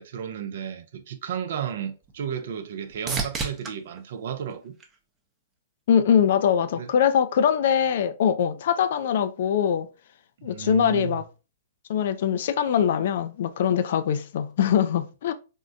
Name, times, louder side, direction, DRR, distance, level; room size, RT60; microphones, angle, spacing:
voice 1, 0.0-4.7 6.8-6.9 10.4-11.2, right 8 dB, 65° right, 0.5 m, -33 dB
sound 1, 1.3-5.6 6.1-6.7 14.5-14.6, right 4 dB, 20° right, 0.6 m, -36 dB
voice 2, 5.9-9.9 10.4-11.2 11.9-15.3, left 8 dB, 60° left, 0.3 m, -22 dB
3.5 x 2.1 x 2.5 m
hypercardioid pair, 115°, 0 cm